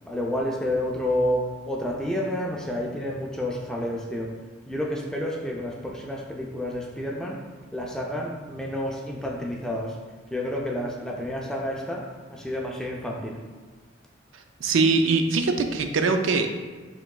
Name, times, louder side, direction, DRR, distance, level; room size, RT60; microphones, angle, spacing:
voice 1, 0.0-4.4 4.7-10.0 10.3-13.5, left 1 dB, 5° left, -1 dB, 0.4 m, -30 dB
voice 2, 14.6-16.5, right 4 dB, 80° right, 6 dB, 0.4 m, -22 dB
5.9 x 3.8 x 2.3 m, 1.4 s
head